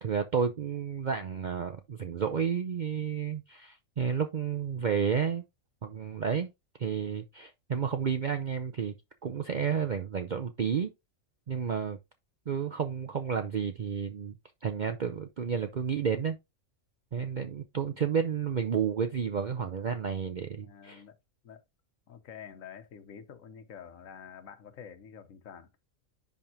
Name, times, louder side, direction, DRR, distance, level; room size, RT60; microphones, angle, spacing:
voice 1, 0.0-5.4 5.8-6.5 6.8-9.0 9.2-10.9 11.5-12.0 12.5-14.4 14.6-16.4 17.1-21.0, right 7 dB, 50° right, 0.6 m, -31 dB
voice 2, 20.6-21.2 21.4-21.6 22.1-25.7, left 7 dB, 80° left, 1.3 m, -48 dB
10.5 x 3.6 x 2.7 m
omnidirectional pair, 1.4 m